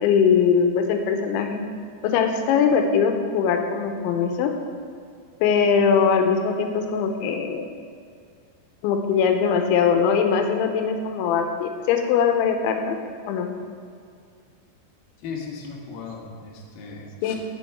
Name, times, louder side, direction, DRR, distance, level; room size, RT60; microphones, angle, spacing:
voice 1, 0.0-1.6 2.0-4.5 5.4-7.6 8.8-13.0 13.3-13.5 17.2-17.4, left 6 dB, 90° left, 5 dB, 3.1 m, -21 dB
voice 2, 15.2-17.4, left 5 dB, 65° left, -2 dB, 2.7 m, -37 dB
10.0 x 7.1 x 5.9 m, 2.2 s
omnidirectional pair, 5.3 m